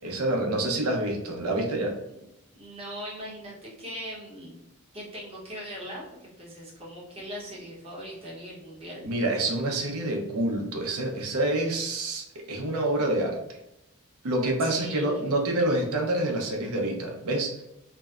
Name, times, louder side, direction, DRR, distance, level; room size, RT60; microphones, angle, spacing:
voice 1, 0.0-1.9 9.0-13.4 14.2-17.6, right 1 dB, 80° right, 1 dB, 0.6 m, -27 dB
voice 2, 2.5-4.6 4.9-9.1 14.6-15.3, equal, 25° right, -5 dB, 0.8 m, -40 dB
2.6 x 2.0 x 2.3 m, 0.86 s
head